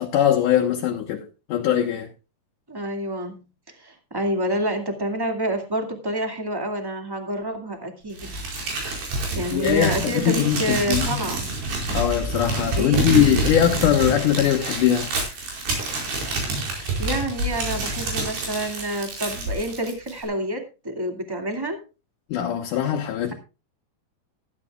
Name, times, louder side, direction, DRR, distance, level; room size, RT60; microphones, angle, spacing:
voice 1, 0.0-2.1 9.5-11.2 11.9-15.1 22.3-23.3, left 10 dB, 65° left, 2.4 m, -21 dB
voice 2, 2.7-3.4 3.8-8.3 9.3-11.5 12.7-13.1 16.6-21.8, right 1 dB, 15° right, 0.9 m, -28 dB
Crumpling crinkling, 8.2-20.2, right 2 dB, 90° right, 7.0 m, -27 dB
16.5 x 13.5 x 2.4 m
omnidirectional pair, 4.7 m